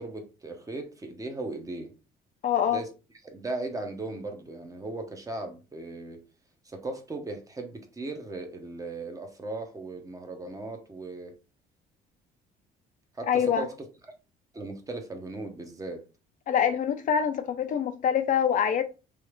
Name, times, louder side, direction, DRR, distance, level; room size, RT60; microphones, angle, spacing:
voice 1, 0.0-1.9 2.7-2.9 3.2-6.2 6.7-11.3 13.1-13.8 14.5-16.0, right 2 dB, 20° right, 0.8 m, -37 dB
voice 2, 2.4-2.8 13.3-13.7 16.5-18.8, left 8 dB, 50° left, 0.5 m, -25 dB
3.2 x 2.4 x 3.0 m
cardioid pair, 110°, 17 cm